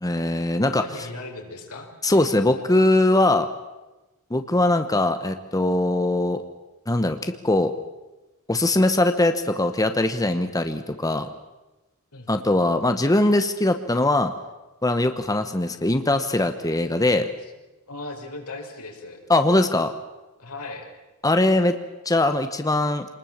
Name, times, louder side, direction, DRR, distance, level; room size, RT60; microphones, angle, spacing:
voice 1, 0.0-0.8 2.0-3.5 4.3-6.4 6.9-7.7 8.5-11.3 12.3-14.3 14.8-17.3 19.3-19.9 21.2-21.7 22.0-23.0, left 2 dB, 15° left, 8 dB, 1.0 m, -21 dB
voice 2, 0.7-2.3 2.5-2.6 12.1-12.4 17.4-17.5 17.9-19.2 20.4-20.9, left 2 dB, 90° left, 2 dB, 4.6 m, -38 dB
25.5 x 20.5 x 7.3 m, 1.1 s
head